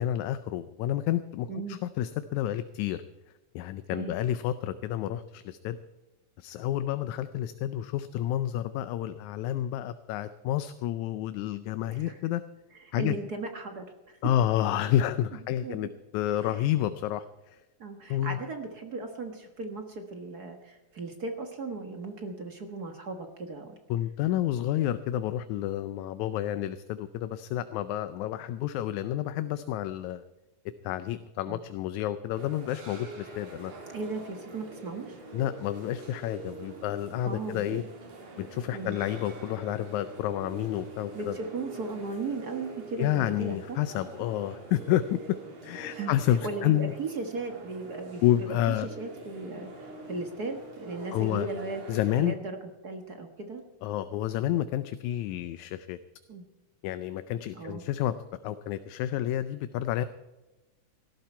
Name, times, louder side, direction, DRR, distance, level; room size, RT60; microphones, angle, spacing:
voice 1, 0.0-3.0 3.6-5.8 6.4-12.4 12.9-13.1 14.2-17.6 18.1-18.4 23.9-30.2 30.8-33.7 35.3-37.8 38.4-41.4 43.0-45.4 45.6-46.9 48.2-48.9 51.1-51.5 51.9-52.4 53.8-56.0 56.8-58.2 58.4-60.1, left 12 dB, 80° left, 12 dB, 1.9 m, -29 dB
voice 2, 11.9-12.3 12.8-14.2 15.6-15.8 16.4-16.7 17.8-23.7 31.5-31.6 33.9-35.2 37.2-37.9 38.7-38.9 41.1-43.8 45.8-46.1 46.4-51.8 52.2-52.6 52.8-53.6 56.3-56.5 57.5-57.8, right 3 dB, 45° right, 5 dB, 1.3 m, -37 dB
sound 1, 32.3-52.2, right 3 dB, 70° right, 4.5 m, -45 dB
17.5 x 13.5 x 4.5 m, 1.1 s
omnidirectional pair, 3.6 m